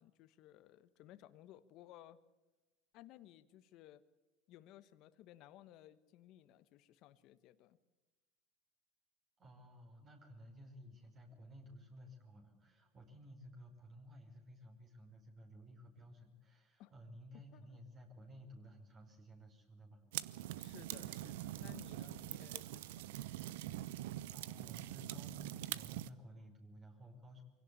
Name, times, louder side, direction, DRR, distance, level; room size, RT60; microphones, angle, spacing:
voice 1, 0.0-2.2 2.9-4.0 4.5-7.8 16.8-16.9 17.5-17.8 20.6-23.1, left 13 dB, 60° left, 12 dB, 1.2 m, -59 dB
voice 2, 9.4-20.0 22.0-22.2 24.3-27.4, equal, 40° right, 2 dB, 5.3 m, -56 dB
sound 1, 20.1-26.1, right 14 dB, 85° right, 0.7 m, -44 dB
24.0 x 17.0 x 8.4 m, 1.1 s
supercardioid pair, 100°, 0 cm